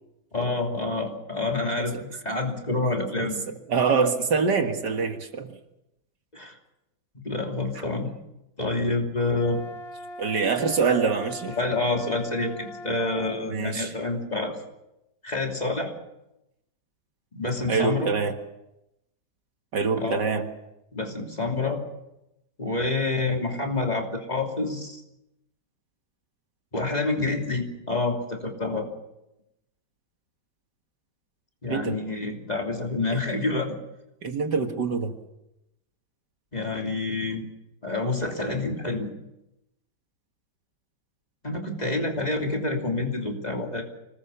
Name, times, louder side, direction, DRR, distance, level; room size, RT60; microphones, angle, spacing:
voice 1, 0.3-3.4 6.3-6.6 7.1-8.1 8.6-9.6 11.5-14.5 15.2-15.9 17.3-18.1 20.0-20.2 20.9-21.8 22.6-25.0 26.7-28.9 31.6-33.8 36.5-37.4 37.8-39.1 41.4-43.8, left 2 dB, 20° left, 1 dB, 3.1 m, -28 dB
voice 2, 3.7-5.6 7.8-7.9 10.2-11.6 13.5-13.9 17.7-18.4 19.7-20.5 31.7-32.0 33.1-33.2 34.2-35.1, right 5 dB, 65° right, 6 dB, 2.3 m, -25 dB
sound 1, 9.3-13.4, left 1 dB, 85° left, 2.4 m, -40 dB
25.5 x 19.5 x 7.0 m, 0.90 s
omnidirectional pair, 2.0 m